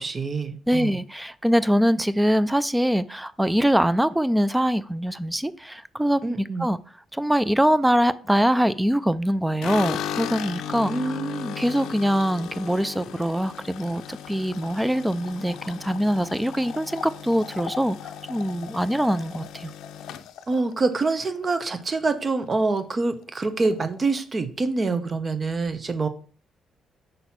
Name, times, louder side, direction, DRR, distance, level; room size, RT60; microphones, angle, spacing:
voice 1, 0.0-1.0 6.2-6.7 10.9-11.6 20.5-26.1, right 3 dB, 35° right, 10 dB, 0.8 m, -26 dB
voice 2, 0.7-6.8 7.1-10.9 11.6-18.0 18.3-19.7, equal, 5° right, 16 dB, 0.4 m, -23 dB
sound 1, 9.6-21.9 22.2-22.8 23.1-23.2 23.5-24.2, left 9 dB, 85° left, 0.4 m, -36 dB
5.3 x 4.0 x 5.8 m, 0.43 s
cardioid pair, 90°, 0 cm